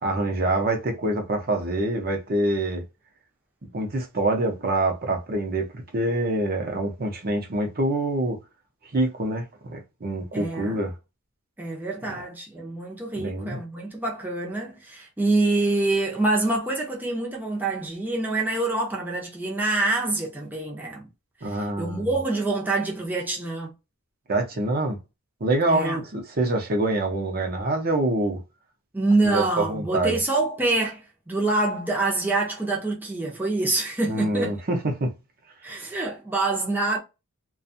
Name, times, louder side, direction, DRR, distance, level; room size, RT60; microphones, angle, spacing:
voice 1, 0.0-2.8 3.6-8.4 8.9-10.9 12.0-12.2 13.1-13.6 21.4-22.1 24.3-25.0 25.4-28.4 29.2-30.2 34.1-35.1, right 2 dB, 45° right, 0.7 m, -26 dB
voice 2, 10.3-10.8 11.6-21.1 21.4-23.7 25.7-26.0 28.9-34.5 35.6-37.0, right 2 dB, 10° right, 0.6 m, -26 dB
2.5 x 2.3 x 2.6 m
head